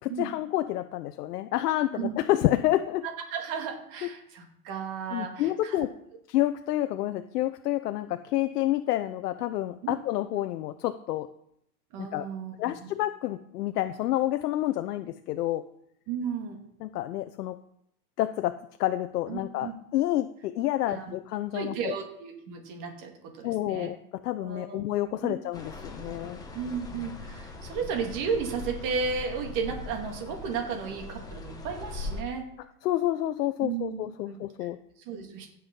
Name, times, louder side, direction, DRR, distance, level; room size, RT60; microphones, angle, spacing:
voice 1, 0.0-3.1 5.1-5.9 6.3-11.3 12.0-12.2 12.6-15.6 16.8-17.6 18.2-21.9 23.4-26.4 32.8-34.8, left 14 dB, 75° left, 10 dB, 0.7 m, -29 dB
voice 2, 3.0-5.9 9.8-10.0 11.9-12.9 16.1-16.6 19.3-19.7 20.9-21.1 21.5-23.9 24.4-24.8 25.2-25.3 26.5-32.5 33.6-34.0 34.3-34.7 35.0-35.5, right 6 dB, 40° right, 3 dB, 2.4 m, -34 dB
sound 1, 25.5-32.2, left 2 dB, 10° left, 1.6 m, -40 dB
16.5 x 7.1 x 3.9 m, 0.75 s
hypercardioid pair, 130°, 48 cm